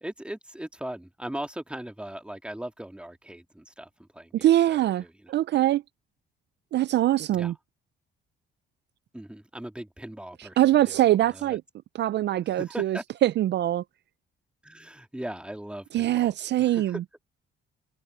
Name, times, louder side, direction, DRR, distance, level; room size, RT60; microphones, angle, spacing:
voice 1, 0.0-5.1 7.3-7.5 9.1-10.6 10.9-11.6 12.5-13.0 14.6-16.3 16.6-17.0, right 1 dB, 5° right, 2.3 m, -39 dB
voice 2, 4.4-5.8 6.7-7.5 10.4-11.6 11.9-13.8 15.9-17.0, right 13 dB, 60° right, 0.4 m, -23 dB
cardioid pair, 90°, 20 cm